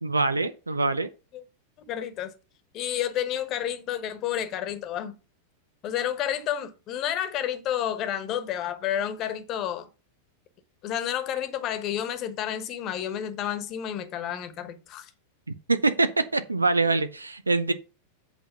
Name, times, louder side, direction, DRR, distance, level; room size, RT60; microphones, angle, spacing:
voice 1, 0.0-1.1 15.7-17.7, right 3 dB, 80° right, 0.5 m, -24 dB
voice 2, 1.8-2.3 2.7-5.1 5.8-9.9 10.8-15.1, left 10 dB, 35° left, 1.1 m, -30 dB
8.0 x 4.3 x 5.6 m
figure-of-eight pair, 90°, 0 cm